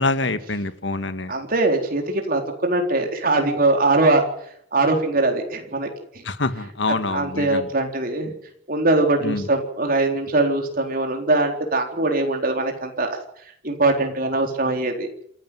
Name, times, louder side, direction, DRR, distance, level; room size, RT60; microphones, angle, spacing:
voice 1, 0.0-1.3 6.3-7.7 9.2-9.5, left 2 dB, 75° left, 11 dB, 1.8 m, -25 dB
voice 2, 1.3-4.2 4.7-5.9 6.1-6.2 7.0-8.3 8.7-13.2 13.6-15.1, right 2 dB, 50° right, 3 dB, 4.1 m, -21 dB
27.5 x 12.0 x 9.4 m, 0.70 s
head